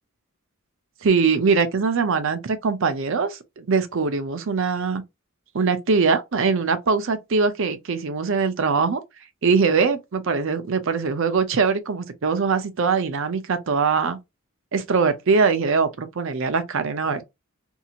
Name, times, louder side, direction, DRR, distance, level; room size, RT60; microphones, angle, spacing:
voice 1, 1.0-5.0 5.5-9.0 9.4-14.2 14.7-17.2, right 5 dB, 65° right, 0.6 m, -22 dB
2.8 x 2.7 x 2.4 m
head